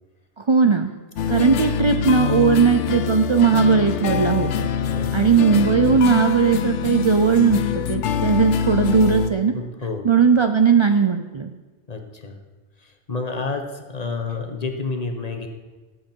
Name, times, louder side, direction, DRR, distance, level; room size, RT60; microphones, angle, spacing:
voice 1, 0.4-0.9 1.3-4.7 5.1-9.5 10.0-11.5, right 6 dB, 45° right, 7 dB, 0.4 m, -18 dB
sound 1, 1.2-9.3, left 8 dB, 75° left, 1.0 m, -24 dB
voice 2, 4.9-5.3 9.5-10.1 11.9-12.4 12.8-15.5, left 4 dB, 35° left, 4 dB, 1.2 m, -30 dB
17.5 x 7.8 x 4.5 m, 1.3 s
omnidirectional pair, 1.2 m